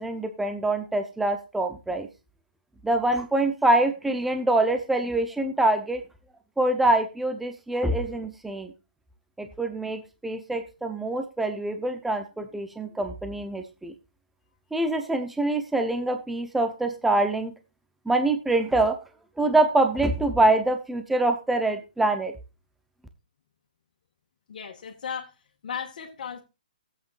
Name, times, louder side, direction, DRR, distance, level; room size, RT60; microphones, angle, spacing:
voice 1, 0.0-2.1 2.8-6.0 6.6-8.7 9.4-13.9 14.7-17.5 18.1-19.0 19.4-22.3, right 2 dB, 5° right, 0.7 m, -25 dB
voice 2, 24.5-26.4, left 7 dB, 60° left, 1.9 m, -36 dB
15.0 x 8.2 x 2.5 m
hypercardioid pair, 160°, 5 cm